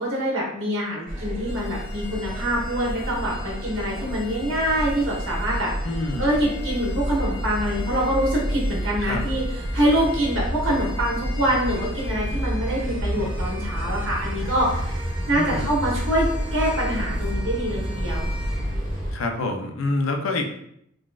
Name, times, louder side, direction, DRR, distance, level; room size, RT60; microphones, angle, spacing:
voice 1, 0.0-5.7 6.2-15.0 15.3-18.3, equal, 65° right, -4 dB, 1.1 m, -25 dB
sound 1, 1.1-19.1, equal, 5° right, 1.4 m, -29 dB
voice 2, 5.8-6.3 9.0-9.2 15.3-15.7 19.1-20.4, left 2 dB, 70° left, 3 dB, 0.5 m, -27 dB
3.9 x 2.3 x 2.3 m, 0.73 s
head